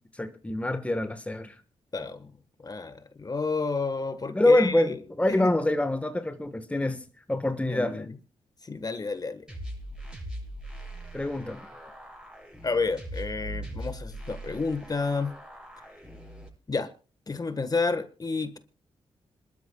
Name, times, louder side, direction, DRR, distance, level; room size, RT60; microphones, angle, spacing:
voice 1, 0.1-1.5 4.3-8.1 11.1-11.6, left 1 dB, 10° left, 1.3 m, -26 dB
voice 2, 1.9-2.3 2.6-4.9 5.3-5.5 7.7-8.0 8.6-9.5 12.6-15.3 16.7-16.9 17.3-18.6, left 4 dB, 35° left, 1.4 m, -30 dB
sound 1, 9.5-16.5, equal, 5° right, 7.9 m, -41 dB
26.5 x 12.5 x 2.3 m
cardioid pair, 70°, 12 cm